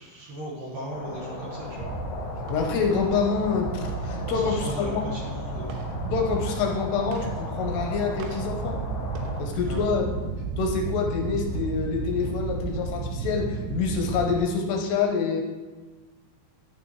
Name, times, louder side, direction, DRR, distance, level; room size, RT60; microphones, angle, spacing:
voice 1, 0.0-1.9 4.3-5.8 9.6-9.9, right 1 dB, 60° right, -5 dB, 2.4 m, -37 dB
sound 1, 0.9-9.4, left 2 dB, 55° left, 1.2 m, -37 dB
sound 2, 1.8-14.4, right 4 dB, 80° right, 2.6 m, -33 dB
voice 2, 2.5-5.0 6.1-8.8 9.4-10.0 10.6-15.4, left 5 dB, 75° left, 2 dB, 2.7 m, -26 dB
11.5 x 9.1 x 3.1 m, 1.3 s
omnidirectional pair, 5.2 m